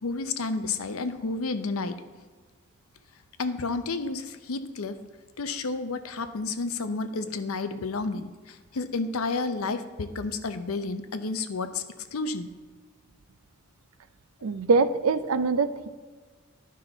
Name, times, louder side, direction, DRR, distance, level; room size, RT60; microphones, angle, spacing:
voice 1, 0.0-1.9 3.4-5.0 5.4-11.8 12.1-12.5, left 3 dB, 80° left, 10 dB, 0.7 m, -31 dB
voice 2, 14.4-15.9, right 4 dB, 85° right, 13 dB, 0.5 m, -23 dB
11.5 x 5.6 x 3.9 m, 1.5 s
head